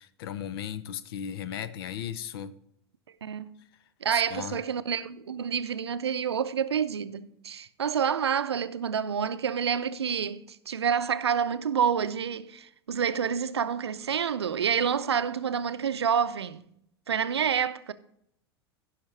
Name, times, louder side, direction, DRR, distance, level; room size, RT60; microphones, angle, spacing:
voice 1, 0.0-2.5 4.1-4.6, left 9 dB, 65° left, 0.7 m, -36 dB
voice 2, 4.0-16.6 17.1-17.9, right 7 dB, 85° right, 0.5 m, -28 dB
15.5 x 5.9 x 3.3 m
hypercardioid pair, 85°, 13 cm